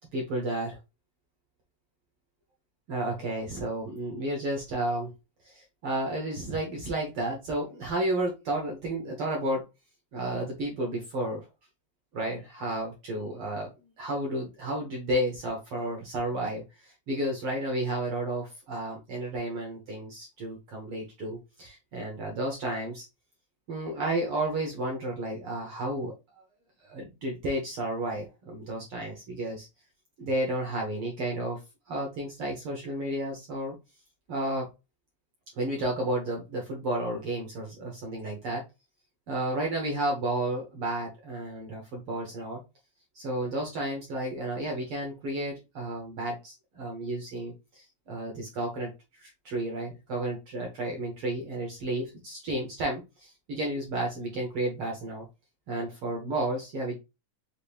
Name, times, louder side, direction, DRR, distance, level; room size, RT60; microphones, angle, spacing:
voice 1, 0.1-0.8 2.9-5.1 5.4-9.6 10.1-11.5 12.1-13.7 14.0-23.1 23.7-26.4 26.8-29.7 30.2-31.6 31.9-33.8 34.3-34.7 35.5-38.6 39.3-42.6 43.1-55.3 55.7-57.0, right 1 dB, 65° right, 0 dB, 1.3 m, -32 dB
5.7 x 2.6 x 3.3 m, 0.26 s
omnidirectional pair, 3.9 m